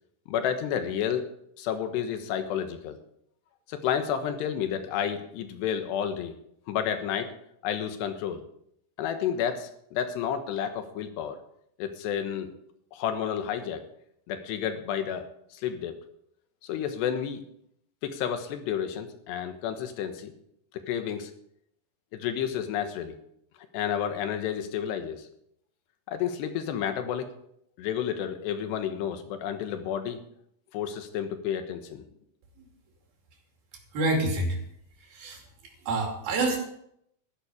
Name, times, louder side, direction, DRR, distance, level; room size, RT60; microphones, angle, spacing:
voice 1, 0.3-1.3 1.6-3.0 3.7-6.4 6.7-7.3 7.6-8.4 9.0-11.4 11.8-12.5 12.9-13.8 14.3-16.0 16.6-17.4 18.0-20.3 20.7-21.3 22.1-23.2 23.7-25.3 26.1-27.3 27.8-30.2 30.7-32.0, left 9 dB, 90° left, 8 dB, 3.4 m, -31 dB
voice 2, 33.9-34.6 35.1-35.4 35.8-36.6, right 2 dB, 65° right, 1 dB, 4.4 m, -27 dB
13.5 x 11.5 x 5.0 m, 0.72 s
omnidirectional pair, 4.7 m